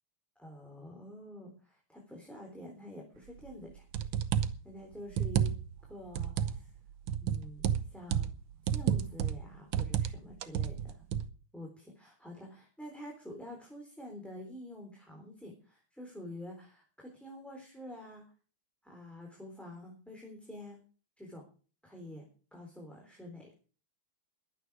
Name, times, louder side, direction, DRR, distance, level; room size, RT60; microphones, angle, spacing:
voice 1, 0.4-3.9 4.6-5.5 5.9-6.7 7.2-8.3 8.6-11.0 11.5-18.2 18.8-20.8 21.2-21.4 21.8-22.3 22.5-23.6, left 1 dB, ahead, 0 dB, 3.6 m, -47 dB
sound 1, 3.5-3.6 3.9-4.6 5.1-5.8 6.1-6.6 7.1-8.4 8.7-9.4 9.7-10.1 10.4-11.3, right 9 dB, 75° right, 1.8 m, -31 dB
22.0 x 9.1 x 4.8 m, 0.39 s
omnidirectional pair, 2.4 m